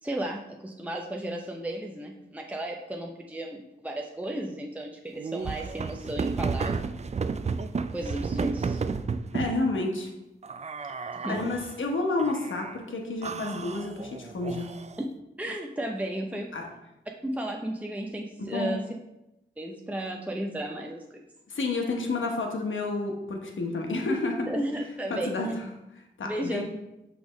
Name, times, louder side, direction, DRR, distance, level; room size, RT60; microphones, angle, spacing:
voice 1, 0.0-6.9 7.9-8.8 11.1-11.4 15.4-16.5 17.2-18.8 19.6-21.0 24.5-25.5 26.2-26.6, right 1 dB, 5° right, 1 dB, 0.7 m, -34 dB
sound 1, 5.1-9.6 10.4-11.7 12.2-12.8 13.2-15.0, right 5 dB, 35° right, 0.4 m, -32 dB
voice 2, 9.3-10.1 11.0-14.7 16.5-16.7 18.5-18.7 21.5-24.5 25.1-25.5 26.2-26.6, left 2 dB, 70° left, 2 dB, 1.1 m, -30 dB
6.0 x 3.4 x 5.0 m, 0.92 s
cardioid pair, 40°, 21 cm